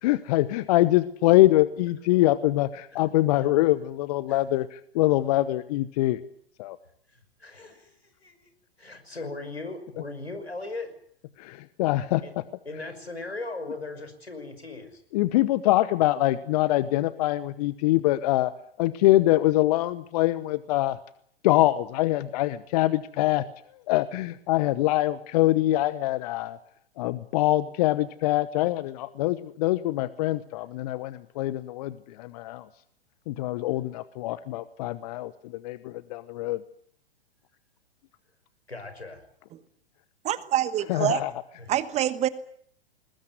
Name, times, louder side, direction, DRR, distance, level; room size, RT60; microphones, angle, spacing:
voice 1, 0.0-6.2 6.6-6.8 9.2-9.3 10.0-10.1 11.4-12.4 12.7-12.8 15.1-18.5 18.8-21.0 21.4-23.5 23.9-26.6 27.0-32.7 33.3-36.6 40.8-41.4, left 16 dB, 40° left, 16 dB, 1.0 m, -24 dB
voice 2, 7.4-8.5 8.8-10.9 12.2-12.3 12.7-15.0 38.7-39.2 41.6-41.7, left 3 dB, 85° left, 8 dB, 5.8 m, -38 dB
voice 3, 40.2-41.2 41.7-42.3, right 12 dB, 20° right, 15 dB, 1.2 m, -26 dB
22.0 x 20.0 x 9.4 m, 0.65 s
figure-of-eight pair, 105°, 31 cm